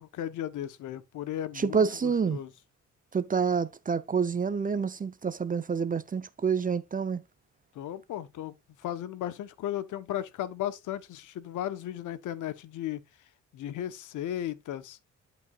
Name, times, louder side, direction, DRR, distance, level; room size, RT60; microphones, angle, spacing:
voice 1, 0.0-2.5 7.7-8.5 8.8-13.0 13.5-15.0, left 11 dB, 80° left, 1.2 m, -35 dB
voice 2, 1.5-2.4 3.1-7.2, right 6 dB, 25° right, 0.8 m, -28 dB
11.5 x 5.4 x 2.5 m
cardioid pair, 90°, 30 cm